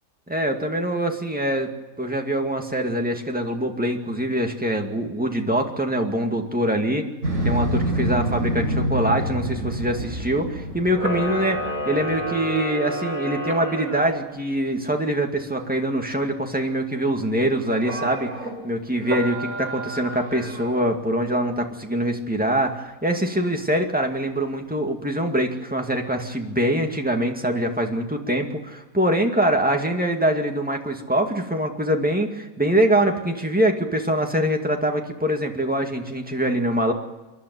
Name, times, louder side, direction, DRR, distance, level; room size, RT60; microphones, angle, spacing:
voice 1, 0.3-1.7 2.0-7.0 7.4-11.6 11.8-18.3 18.6-36.9, right 1 dB, 5° right, 2 dB, 2.1 m, -24 dB
Motorcycle, 7.2-12.5, equal, 60° right, 5.3 m, -27 dB
Camera, 10.9-14.2 17.8-18.5 19.0-20.8, right 1 dB, 75° right, 4.7 m, -30 dB
28.0 x 11.5 x 9.5 m, 1.1 s
omnidirectional pair, 1.5 m